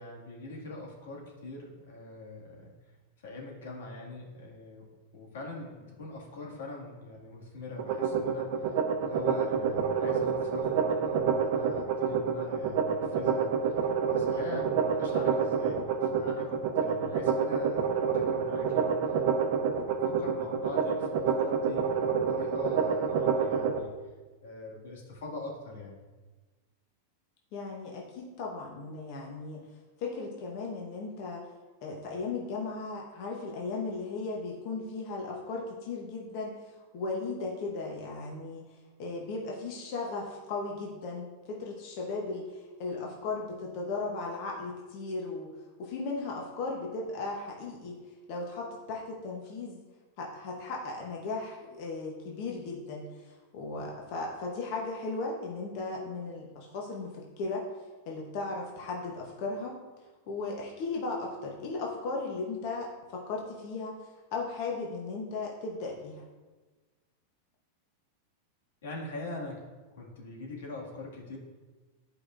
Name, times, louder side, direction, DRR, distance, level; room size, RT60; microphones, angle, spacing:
voice 1, 0.0-2.7 3.2-4.9 5.1-19.1 19.5-23.9 24.4-26.0 68.8-69.7 69.9-71.4, left 2 dB, 90° left, -2 dB, 1.9 m, -42 dB
sound 1, 7.8-23.8, right 6 dB, 50° right, 0.6 m, -28 dB
voice 2, 27.5-29.7 30.0-31.5 31.8-36.5 36.9-38.7 39.0-45.5 45.8-48.0 48.3-49.8 50.2-57.6 58.1-59.8 60.3-63.9 64.3-66.3, left 3 dB, 40° left, -1 dB, 0.8 m, -36 dB
11.0 x 4.8 x 2.5 m, 1.3 s
supercardioid pair, 170°, 0 cm